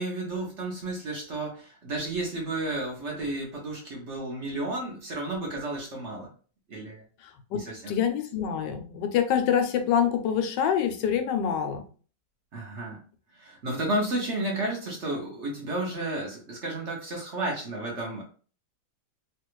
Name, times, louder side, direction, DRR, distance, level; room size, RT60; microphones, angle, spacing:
voice 1, 0.0-6.3 6.7-7.0 7.5-7.9 12.5-13.0 13.3-18.2, right 2 dB, 50° right, -2 dB, 1.0 m, -32 dB
voice 2, 7.9-11.8, left 8 dB, 85° left, 7 dB, 1.3 m, -25 dB
3.2 x 2.4 x 3.0 m, 0.39 s
omnidirectional pair, 1.9 m